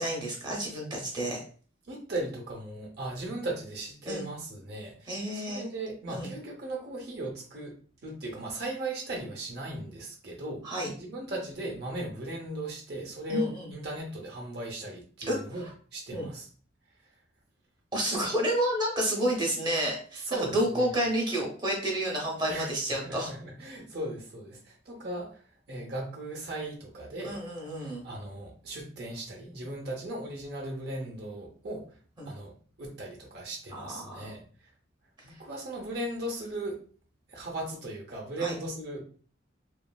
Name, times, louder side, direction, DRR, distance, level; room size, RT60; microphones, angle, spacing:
voice 1, 0.0-1.4 4.1-4.3 5.1-5.7 6.1-6.3 10.6-10.9 13.3-13.7 15.3-15.7 16.1-16.3 17.9-23.3 27.2-28.0 32.2-32.3 33.7-34.3 38.4-38.5, right 1 dB, 20° right, -1 dB, 0.7 m, -30 dB
voice 2, 1.8-7.7 8.0-15.7 15.9-16.5 20.2-20.9 22.5-25.4 25.7-27.4 27.8-32.0 32.3-32.5 32.8-34.7 35.2-36.8 37.3-39.0, right 1 dB, 55° right, -1 dB, 0.6 m, -37 dB
3.0 x 2.3 x 2.2 m, 0.43 s
head